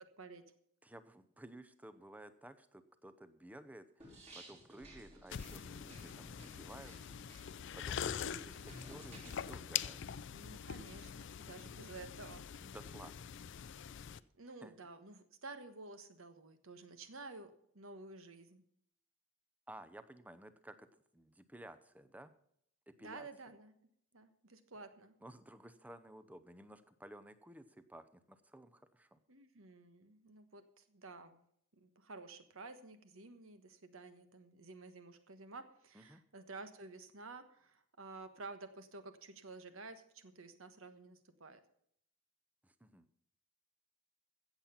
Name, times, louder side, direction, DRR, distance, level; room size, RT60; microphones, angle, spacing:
voice 1, 0.2-0.5 10.3-12.5 14.4-18.6 23.0-23.8 24.1-25.1 29.3-31.4 31.8-41.6, right 3 dB, 65° right, 10 dB, 1.3 m, -52 dB
voice 2, 0.8-7.0 7.7-10.1 12.6-13.2 14.6-14.7 19.7-22.3 22.9-23.3 25.2-29.2 35.9-36.2 42.6-43.1, right 1 dB, 5° right, 12 dB, 0.6 m, -55 dB
sound 1, 4.0-9.4, right 1 dB, 30° right, 3.7 m, -56 dB
sound 2, 5.3-14.2, left 8 dB, 55° left, 0.4 m, -44 dB
15.5 x 7.4 x 5.8 m, 0.68 s
head